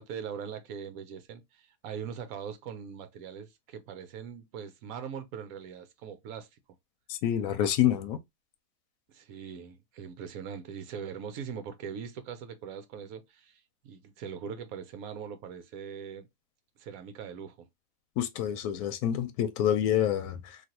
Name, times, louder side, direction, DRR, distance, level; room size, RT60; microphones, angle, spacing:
voice 1, 0.0-6.5 9.1-16.3 16.8-17.7, right 7 dB, 70° right, 1.1 m, -41 dB
voice 2, 7.1-8.2 18.2-20.6, left 10 dB, 70° left, 1.0 m, -27 dB
3.2 x 2.5 x 2.7 m
omnidirectional pair, 1.7 m